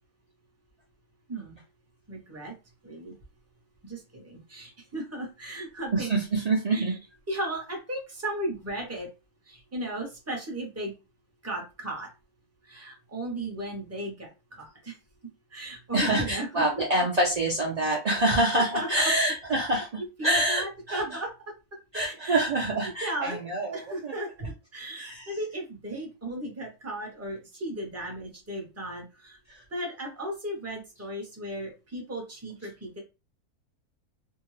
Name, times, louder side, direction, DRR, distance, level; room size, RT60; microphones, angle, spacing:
voice 1, 2.1-2.5 2.8-3.1 3.8-6.1 6.7-7.0 7.3-9.1 9.4-10.9 11.4-12.1 12.6-15.0 15.5-17.1 18.5-19.1 19.7-19.8 20.2-21.3 21.9-22.4 23.0-23.4 23.7-24.3 24.7-29.4 29.7-33.0, right 1 dB, 15° right, 0 dB, 0.6 m, -35 dB
voice 2, 5.9-6.9 15.9-19.9 20.2-21.2 21.9-24.1 25.0-25.3, right 1 dB, 60° right, -3 dB, 0.4 m, -26 dB
2.7 x 2.2 x 3.1 m, 0.29 s
omnidirectional pair, 1.6 m